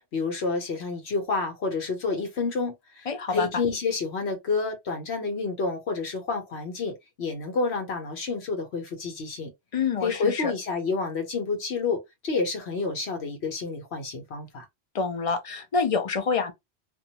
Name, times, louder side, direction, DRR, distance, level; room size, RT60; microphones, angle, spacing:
voice 1, 0.1-9.5 10.0-14.6, left 4 dB, 70° left, 1.2 m, -29 dB
voice 2, 3.1-3.5 9.7-10.5 14.9-16.5, left 5 dB, 45° left, 0.4 m, -27 dB
2.5 x 2.2 x 2.8 m
omnidirectional pair, 1.2 m